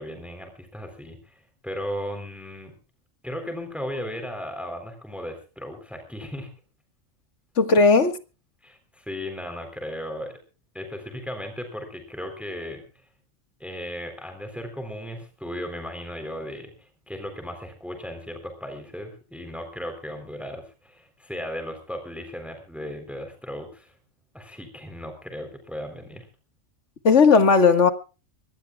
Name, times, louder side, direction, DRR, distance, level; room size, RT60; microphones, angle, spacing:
voice 1, 0.0-2.7 3.2-6.5 7.8-7.9 8.6-10.3 10.7-12.8 13.6-23.9 24.3-26.3, equal, ahead, 3.7 m, -36 dB
voice 2, 7.6-8.2 27.0-27.9, left 4 dB, 65° left, 2.0 m, -16 dB
24.0 x 18.5 x 2.4 m
omnidirectional pair, 1.3 m